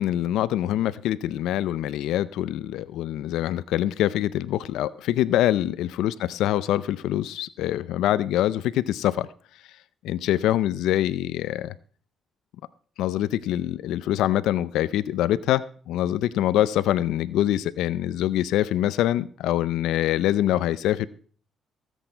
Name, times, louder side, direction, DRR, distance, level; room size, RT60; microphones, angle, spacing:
voice 1, 0.0-9.3 10.0-11.7 13.0-21.1, left 13 dB, 90° left, 16 dB, 0.5 m, -24 dB
17.5 x 8.2 x 4.5 m, 0.44 s
cardioid pair, 90°, 0 cm